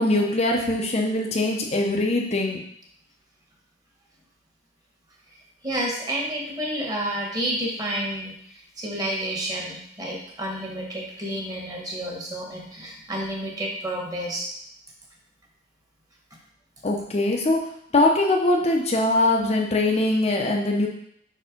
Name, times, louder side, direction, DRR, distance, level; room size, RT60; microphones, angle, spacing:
voice 1, 0.0-2.6 16.8-17.7 17.9-20.9, left 2 dB, 35° left, 0 dB, 0.7 m, -22 dB
voice 2, 5.6-8.3 8.8-14.5, right 1 dB, 20° right, -1 dB, 1.4 m, -30 dB
5.4 x 4.3 x 5.1 m, 0.69 s
head